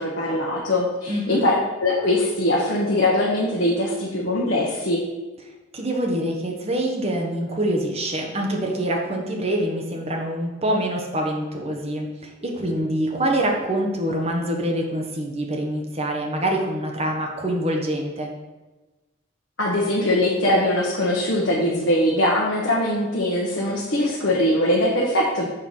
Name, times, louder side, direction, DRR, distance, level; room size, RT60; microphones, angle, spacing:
voice 1, 0.0-5.0 19.6-25.5, left 1 dB, 60° left, -4 dB, 1.2 m, -21 dB
voice 2, 1.1-1.4 5.7-18.3, right 1 dB, 30° right, 1 dB, 1.1 m, -25 dB
6.7 x 4.7 x 5.5 m, 1.2 s
head